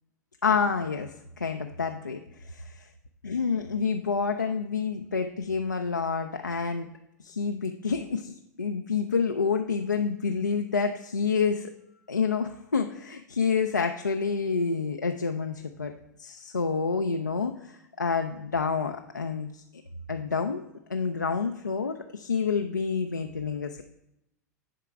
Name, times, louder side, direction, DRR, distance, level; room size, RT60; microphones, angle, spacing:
voice 1, 0.4-1.1 1.4-2.7 3.2-6.9 7.2-8.3 8.6-11.7 12.1-15.9 16.2-19.6 20.1-20.6 20.9-23.8, left 5 dB, 90° left, 4 dB, 0.4 m, -28 dB
10.5 x 3.8 x 4.5 m, 0.87 s
figure-of-eight pair, 90°, 10 cm